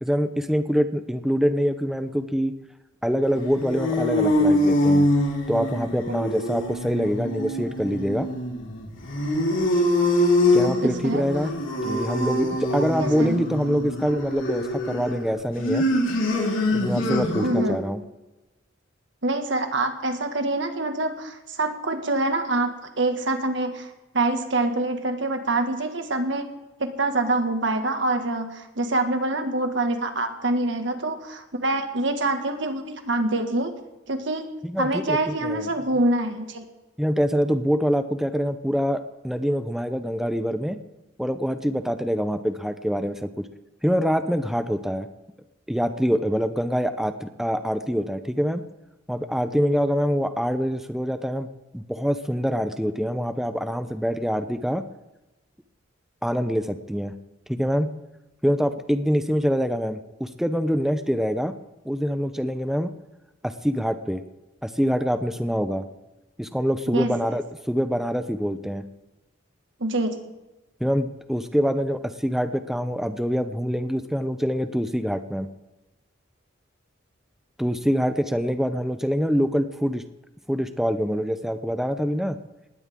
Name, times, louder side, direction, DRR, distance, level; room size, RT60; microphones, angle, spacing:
voice 1, 0.0-2.5 3.0-5.1 5.5-8.3 10.5-11.5 11.8-15.9 16.7-18.0 34.6-35.7 37.0-40.8 41.2-43.5 43.8-45.1 45.7-48.6 49.1-51.5 51.7-54.8 56.2-57.1 57.5-57.9 58.4-61.5 61.8-62.9 63.4-64.2 64.6-65.8 66.4-68.8 70.8-75.5 77.6-80.0 80.5-82.4, equal, ahead, 9 dB, 0.7 m, -25 dB
sound 1, 3.3-17.8, left 1 dB, 85° left, 4.1 m, -24 dB
voice 2, 10.6-11.2 12.8-13.4 17.4-17.8 19.2-26.5 26.8-33.7 34.1-34.5 34.8-36.7 66.9-67.2 69.8-70.3, right 2 dB, 65° right, 6 dB, 2.0 m, -25 dB
20.0 x 16.5 x 3.8 m, 1.0 s
head